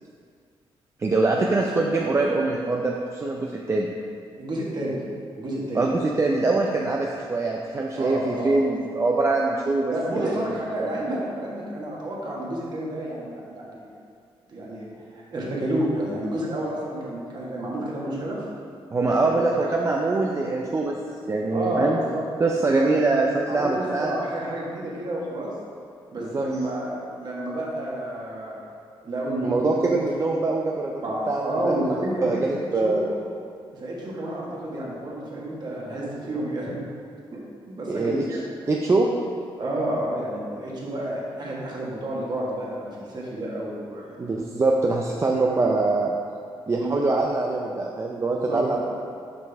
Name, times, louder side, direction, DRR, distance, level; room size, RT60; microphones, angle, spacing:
voice 1, 1.0-3.9 5.7-9.9 10.2-10.3 10.8-10.9 18.9-21.0 21.3-22.0 22.4-24.1 26.2-26.4 29.4-31.0 31.3-31.8 32.2-33.0 37.9-38.2 38.7-39.1 44.2-46.1 46.7-48.8, right 3 dB, 30° right, -1 dB, 0.4 m, -23 dB
voice 2, 4.4-5.0 5.4-5.8 8.0-8.6 9.9-13.9 14.5-18.4 19.0-19.3 19.6-19.7 21.5-22.2 22.6-22.9 23.5-25.5 26.1-28.6 29.0-29.9 31.0-33.1 33.7-36.8 37.3-37.4 37.7-38.4 39.6-44.2 46.7-47.0 48.5-48.8, right 1 dB, 45° right, -4 dB, 1.5 m, -30 dB
6.0 x 5.2 x 3.5 m, 2.3 s
cardioid pair, 95°, 10 cm